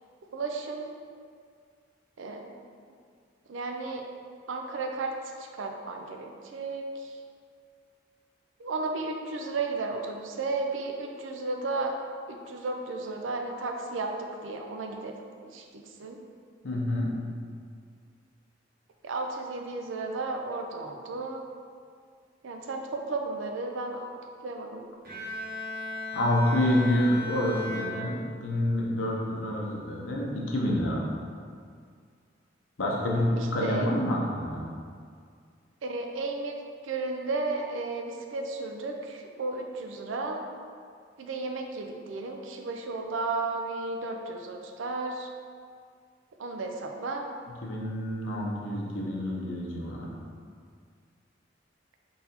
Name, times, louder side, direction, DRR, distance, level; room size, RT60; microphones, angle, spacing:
voice 1, 0.3-0.9 2.2-2.5 3.5-4.0 4.5-7.2 8.6-12.0 12.3-15.1 15.4-16.2 19.0-21.5 22.4-24.1 24.4-24.8 33.4-33.9 35.8-36.6 36.8-40.4 41.2-45.3 46.4-47.2, right 3 dB, 85° right, 3 dB, 0.5 m, -34 dB
voice 2, 16.6-17.1 26.1-31.1 32.8-34.6 47.6-50.1, left 1 dB, 85° left, -2 dB, 0.8 m, -28 dB
Bowed string instrument, 25.0-28.8, left 1 dB, 50° right, 1.0 m, -37 dB
4.0 x 4.0 x 2.8 m, 2.1 s
head